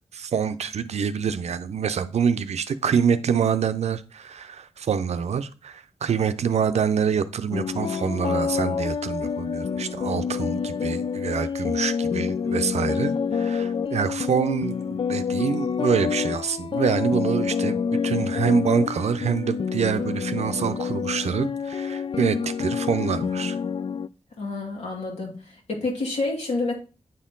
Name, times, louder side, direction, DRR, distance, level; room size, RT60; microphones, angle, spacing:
voice 1, 0.1-23.6, right 7 dB, 80° right, 0.5 m, -26 dB
sound 1, 7.5-24.1, left 6 dB, 55° left, 0.4 m, -27 dB
voice 2, 24.4-26.7, left 3 dB, 80° left, 2.7 m, -29 dB
9.0 x 4.4 x 3.8 m
cardioid pair, 45°, 11 cm